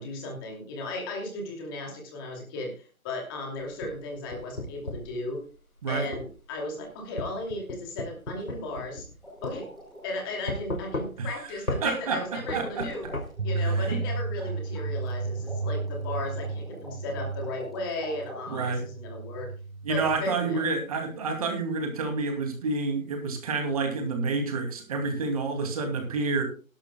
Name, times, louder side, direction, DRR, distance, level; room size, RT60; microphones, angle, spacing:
voice 1, 0.0-5.4 5.9-9.1 9.4-9.7 10.0-13.0 13.4-19.5 19.9-20.7, left 2 dB, 15° left, 1 dB, 2.7 m, -36 dB
sound 1, 3.6-5.1 6.1-6.3 7.2-9.2 9.4-9.6 10.5-11.3 11.7-11.9 12.5-13.3, left 1 dB, 85° left, 3.0 m, -34 dB
sound 2, 9.2-10.4 12.1-12.2 12.5-18.7, equal, ahead, 0.8 m, -46 dB
voice 2, 11.2-11.5 11.8-12.9 13.6-14.0 18.5-18.8 19.8-26.4, right 4 dB, 25° right, 4 dB, 2.5 m, -29 dB
sound 3, 13.4-20.2, right 3 dB, 55° right, 1.4 m, -33 dB
19.0 x 12.0 x 2.3 m, 0.36 s
figure-of-eight pair, 150°, 41 cm